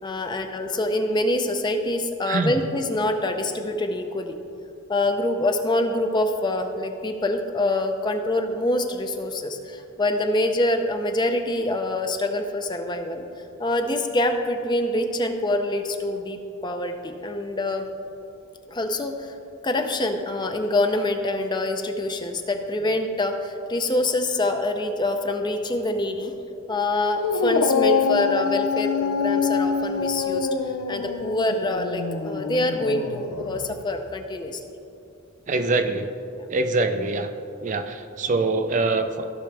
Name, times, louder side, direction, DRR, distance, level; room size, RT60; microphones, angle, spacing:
voice 1, 0.0-4.3 4.9-13.2 13.6-17.9 18.7-19.4 19.6-26.4 26.7-34.6 36.3-36.4, left 1 dB, 20° left, 6 dB, 0.5 m, -25 dB
Dog, 27.1-33.8, left 5 dB, 80° left, 0.5 m, -25 dB
voice 2, 35.5-36.1 36.5-37.3 37.6-39.3, right 3 dB, 35° right, 7 dB, 0.4 m, -24 dB
15.5 x 6.0 x 3.3 m, 2.8 s
head